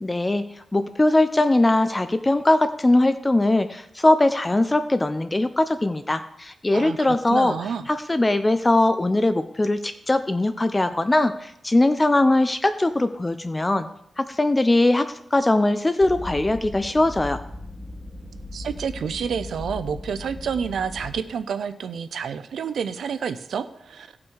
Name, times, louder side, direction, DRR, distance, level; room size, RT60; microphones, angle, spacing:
voice 1, 0.0-7.5 7.9-13.9 14.2-17.4, left 2 dB, 25° left, 11 dB, 0.7 m, -21 dB
voice 2, 6.7-7.8 18.5-24.1, right 7 dB, 90° right, 11 dB, 0.7 m, -29 dB
sound 1, 16.0-21.1, left 2 dB, 20° right, 3.8 m, -37 dB
17.0 x 6.1 x 4.8 m, 0.75 s
cardioid pair, 70°, 0 cm